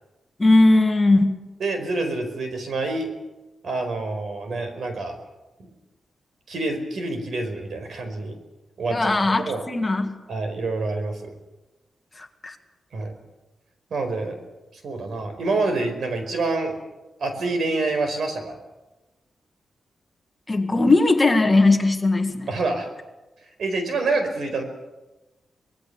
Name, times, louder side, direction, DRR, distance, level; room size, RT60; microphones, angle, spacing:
voice 1, 0.4-1.4 8.9-10.2 12.2-12.6 20.5-22.5, left 2 dB, 20° left, 5 dB, 1.9 m, -19 dB
voice 2, 1.6-3.1 3.6-5.2 5.6-5.7 6.5-8.4 8.8-9.6 10.3-11.3 12.9-13.1 13.9-14.4 14.7-16.7 17.2-18.6 22.5-22.9 23.6-24.6, right 3 dB, 70° right, 6 dB, 4.8 m, -27 dB
25.0 x 19.5 x 7.0 m, 1.1 s
wide cardioid pair, 135°, 0 cm